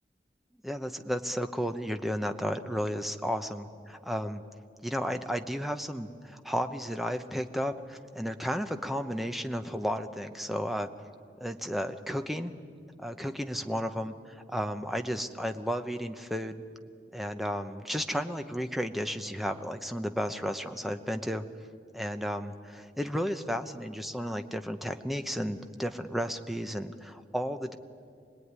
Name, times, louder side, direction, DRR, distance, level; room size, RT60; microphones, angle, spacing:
voice 1, 0.6-4.4 4.8-10.9 11.4-12.5 13.0-16.6 17.1-21.4 21.9-27.8, equal, ahead, 7 dB, 0.9 m, -33 dB
25.5 x 19.5 x 9.7 m, 2.3 s
head